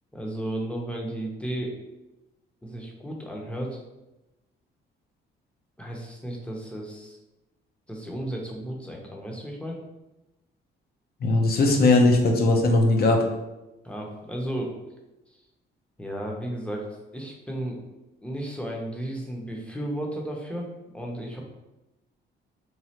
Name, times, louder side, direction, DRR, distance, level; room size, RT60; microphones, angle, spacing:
voice 1, 0.1-1.8 2.6-3.8 5.8-7.2 7.9-9.8 13.8-14.7 16.0-16.9 17.1-17.8 18.2-20.7 20.9-21.4, right 1 dB, 5° left, -1 dB, 0.7 m, -33 dB
voice 2, 11.2-13.2, left 2 dB, 50° left, 2 dB, 0.6 m, -19 dB
3.1 x 2.4 x 2.8 m, 0.99 s
cardioid pair, 90°, 20 cm